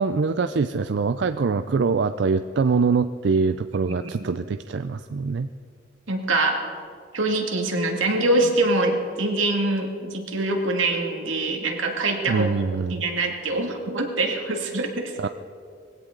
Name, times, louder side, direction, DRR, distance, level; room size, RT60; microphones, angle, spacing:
voice 1, 0.0-5.5 12.3-13.0 15.2-15.3, right 4 dB, 60° right, 10 dB, 0.4 m, -23 dB
voice 2, 3.9-4.3 6.1-6.6 7.1-12.5 12.9-15.2, right 2 dB, 90° right, 2 dB, 2.2 m, -24 dB
20.0 x 16.5 x 3.9 m, 2.2 s
head